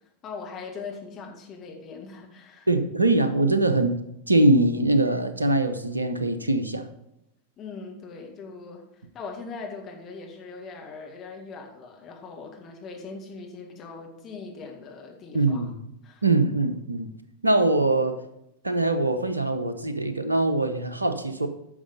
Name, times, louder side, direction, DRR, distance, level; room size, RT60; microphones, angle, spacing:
voice 1, 0.2-2.7 7.6-8.8 9.1-15.7 16.0-16.2, left 4 dB, 30° left, 1 dB, 2.0 m, -40 dB
voice 2, 2.7-3.9 4.3-6.8 15.3-15.7 16.2-17.1 17.4-18.2 18.6-21.5, right 2 dB, 80° right, 10 dB, 0.9 m, -22 dB
10.0 x 6.3 x 5.2 m, 0.82 s
figure-of-eight pair, 90°, 0 cm